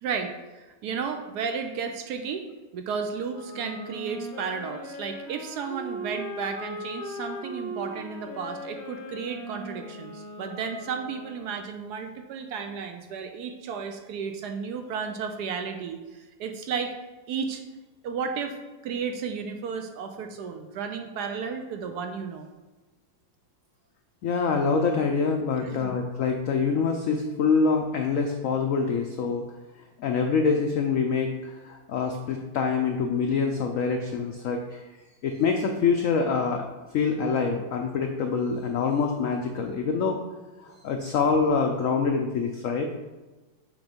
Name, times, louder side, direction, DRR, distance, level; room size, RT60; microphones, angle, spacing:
voice 1, 0.0-2.4 2.7-16.9 17.3-17.6 18.0-18.6 18.8-22.5 25.6-25.9, right 6 dB, 70° right, 5 dB, 1.0 m, -33 dB
Wind instrument woodwind instrument, 3.3-11.6, equal, 30° left, 1.4 m, -39 dB
voice 2, 24.2-29.5 30.0-34.8 35.2-36.6 36.9-40.2 40.6-42.9, left 5 dB, 90° left, 3 dB, 0.7 m, -25 dB
6.9 x 3.2 x 5.1 m, 1.2 s
omnidirectional pair, 2.0 m